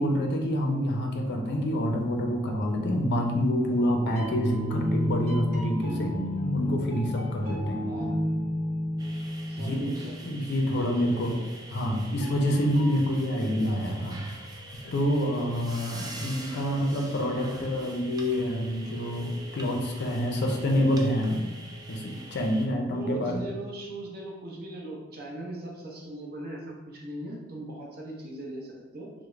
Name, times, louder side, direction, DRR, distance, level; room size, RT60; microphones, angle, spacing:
voice 1, 0.0-6.2 6.5-8.0 9.6-9.9 10.2-11.3 11.7-14.2 14.8-21.4 21.9-23.5, equal, 50° left, 2 dB, 0.5 m, -27 dB
sound 1, 4.0-10.7 12.2-12.9, left 1 dB, 70° right, 1.0 m, -31 dB
voice 2, 7.8-8.1 9.5-11.5 22.9-29.1, right 1 dB, 45° right, -2 dB, 0.7 m, -40 dB
sound 2, 9.0-22.7, right 2 dB, 20° right, 0.3 m, -45 dB
3.4 x 2.1 x 3.1 m, 1.1 s
head